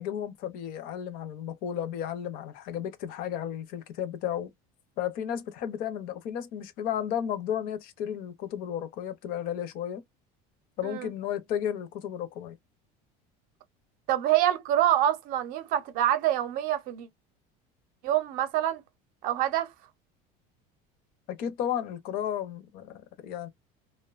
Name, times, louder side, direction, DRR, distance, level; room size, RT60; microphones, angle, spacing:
voice 1, 0.0-4.5 5.0-10.0 10.8-12.6 21.3-23.5, left 9 dB, 50° left, 0.6 m, -33 dB
voice 2, 14.1-17.1 18.0-18.8 19.2-19.7, right 12 dB, 50° right, 0.6 m, -26 dB
2.6 x 2.1 x 2.3 m
cardioid pair, 165°, 19 cm